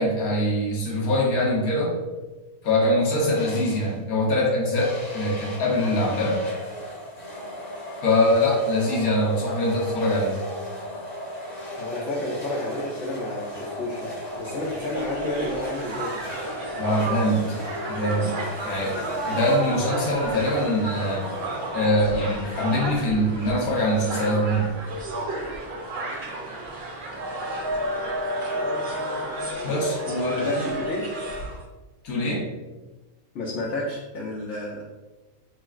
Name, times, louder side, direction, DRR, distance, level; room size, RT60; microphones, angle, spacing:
voice 1, 0.0-2.0 2.6-6.4 8.0-10.4 16.8-17.6 17.9-18.4 18.6-21.3 21.7-24.8 29.6-30.5 32.0-32.5, left 1 dB, 80° left, -3 dB, 1.3 m, -23 dB
sound 1, 3.3-4.0 4.8-22.1, left 1 dB, 35° left, 0.9 m, -36 dB
voice 2, 11.8-16.3 30.3-31.0 33.3-34.8, left 1 dB, 60° left, -4 dB, 0.9 m, -30 dB
Crowd, 14.2-31.6, right 1 dB, 55° right, 0.7 m, -32 dB
4.1 x 3.1 x 2.3 m, 1.2 s
omnidirectional pair, 1.5 m